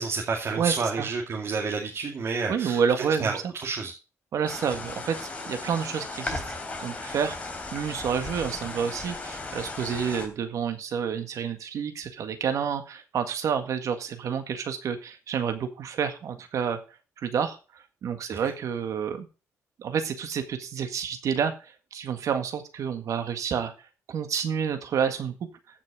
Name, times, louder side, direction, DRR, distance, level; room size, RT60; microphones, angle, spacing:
voice 1, 0.0-2.8 3.2-3.9 18.3-18.5, right 4 dB, 55° right, 0 dB, 2.4 m, -30 dB
voice 2, 0.5-1.1 2.5-3.4 4.3-16.8 17.2-19.3 19.8-25.3, right 7 dB, 70° right, 8 dB, 1.8 m, -29 dB
sound 1, 4.5-10.3, left 3 dB, 25° left, 3.3 m, -36 dB
15.0 x 6.1 x 4.9 m, 0.33 s
cardioid pair, 100°, 6 cm